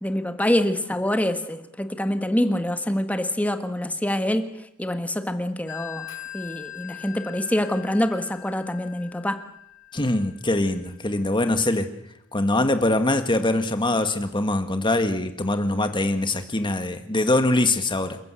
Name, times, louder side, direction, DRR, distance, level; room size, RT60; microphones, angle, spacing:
voice 1, 0.0-4.5 4.8-6.1 6.3-9.4, left 1 dB, 5° left, 8 dB, 1.5 m, -25 dB
Telephone, 5.7-11.0, left 13 dB, 65° left, 2.6 m, -41 dB
voice 2, 9.9-11.9 12.3-18.2, left 2 dB, 25° left, 8 dB, 1.8 m, -23 dB
28.5 x 14.0 x 8.3 m, 0.81 s
head